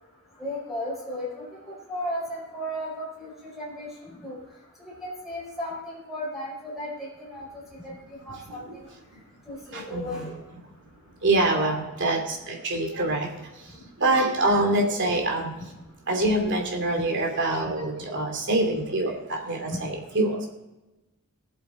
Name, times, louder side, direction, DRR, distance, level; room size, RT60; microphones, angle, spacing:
voice 1, 0.4-4.4 5.0-7.5 7.8-7.9 8.3-8.9 9.4-10.4 11.5-11.9 15.1-15.2 17.0-17.1, equal, ahead, -7 dB, 4.9 m, -35 dB
voice 2, 9.7-10.3 11.2-13.3 13.6-15.5 16.1-20.5, right 2 dB, 55° right, 1 dB, 2.9 m, -25 dB
19.0 x 8.0 x 4.0 m, 1.0 s
head